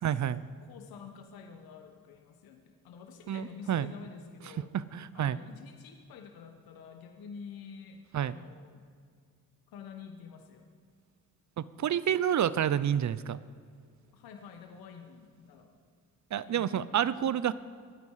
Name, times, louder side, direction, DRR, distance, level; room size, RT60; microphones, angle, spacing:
voice 1, 0.0-0.4 3.3-3.9 4.6-5.4 8.1-8.4 11.6-13.4 16.3-17.5, right 9 dB, 55° right, 17 dB, 0.7 m, -29 dB
voice 2, 0.6-4.7 5.1-8.8 9.7-10.7 14.1-15.8 16.4-17.1, left 6 dB, 90° left, 5 dB, 1.3 m, -48 dB
23.5 x 9.6 x 4.9 m, 2.1 s
cardioid pair, 80°, 35 cm